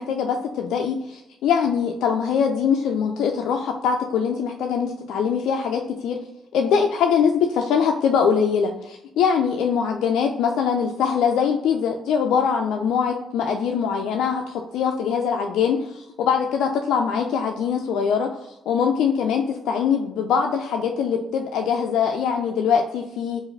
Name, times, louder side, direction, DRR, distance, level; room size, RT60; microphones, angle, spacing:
voice 1, 0.0-6.2 6.5-18.3 18.7-23.4, left 7 dB, 85° left, 2 dB, 0.3 m, -22 dB
4.6 x 2.4 x 3.2 m, 0.91 s
cardioid pair, 90°, 0 cm